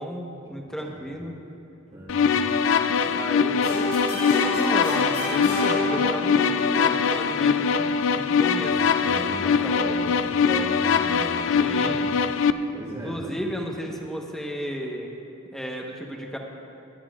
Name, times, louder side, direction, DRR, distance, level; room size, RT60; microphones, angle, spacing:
voice 1, 0.0-1.3 3.1-9.9 11.6-12.0 13.0-15.1 15.5-16.4, equal, ahead, -1 dB, 1.1 m, -34 dB
voice 2, 0.8-1.1 1.9-2.4 2.9-3.0 9.0-12.1 12.7-13.3, equal, 25° right, -9 dB, 1.8 m, -37 dB
sound 1, 2.1-12.5, left 6 dB, 65° left, 0.4 m, -22 dB
sound 2, 3.6-6.6, left 1 dB, 45° left, 3.3 m, -29 dB
23.0 x 10.5 x 2.4 m, 2.7 s
head